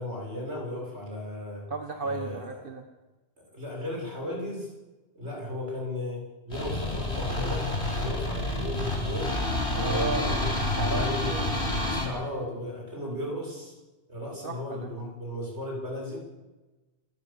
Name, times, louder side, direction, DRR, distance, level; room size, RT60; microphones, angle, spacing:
voice 1, 0.0-1.7 2.0-2.4 3.5-4.7 5.2-9.4 9.7-10.4 10.9-11.4 11.9-13.7 14.1-16.2, left 1 dB, 75° right, -1 dB, 7.1 m, -35 dB
voice 2, 1.7-2.8 9.7-10.3 10.8-11.1 13.0-13.3 14.4-14.9, right 3 dB, 50° right, 6 dB, 1.5 m, -34 dB
sound 1, 6.5-12.1, left 1 dB, 70° left, 5.2 m, -29 dB
28.5 x 15.5 x 7.1 m, 1.2 s
omnidirectional pair, 1.1 m